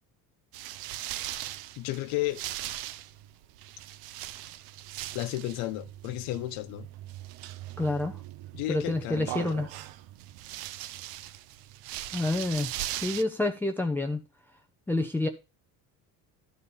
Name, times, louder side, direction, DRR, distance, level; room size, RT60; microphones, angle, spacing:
sound 1, 0.5-13.2, right 14 dB, 70° right, 0.7 m, -40 dB
voice 1, 1.8-2.4 5.1-6.9 8.5-9.5, left 16 dB, 85° left, 1.0 m, -33 dB
voice 2, 7.8-8.2 8.7-9.7 12.1-14.2 14.9-15.3, left 2 dB, 5° left, 0.6 m, -28 dB
12.0 x 4.2 x 7.0 m
cardioid pair, 165°, 37 cm